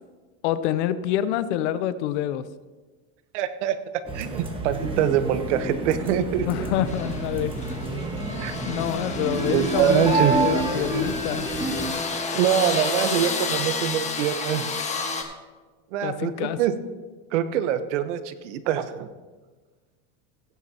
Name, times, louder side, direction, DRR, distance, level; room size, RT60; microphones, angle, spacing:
voice 1, 0.4-2.5 6.5-7.5 7.8-8.0 8.7-11.5 16.0-16.6, left 11 dB, 80° left, 14 dB, 0.8 m, -27 dB
voice 2, 3.3-3.8 4.1-6.5 8.4-8.5 9.5-10.4 12.3-14.7 15.9-16.7 17.3-19.1, right 10 dB, 85° right, 10 dB, 1.0 m, -24 dB
sound 1, 4.1-11.9, right 2 dB, 15° right, 1.5 m, -28 dB
sound 2, 6.9-15.2, left 4 dB, 20° left, 1.3 m, -31 dB
17.0 x 9.4 x 2.9 m, 1.3 s
supercardioid pair, 135°, 34 cm